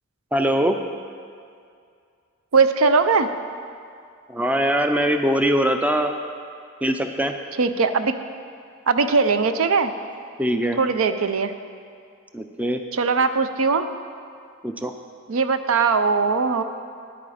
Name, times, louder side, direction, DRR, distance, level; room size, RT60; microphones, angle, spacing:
voice 1, 0.3-0.8 4.3-6.1 6.8-7.3 10.4-10.8 12.3-12.8 14.6-14.9, equal, 5° right, 6 dB, 0.4 m, -22 dB
voice 2, 2.5-3.3 7.6-8.1 8.9-9.9 10.8-11.5 12.9-13.9 15.3-16.6, right 4 dB, 70° right, 10 dB, 0.5 m, -20 dB
10.5 x 8.7 x 4.9 m, 2.3 s
head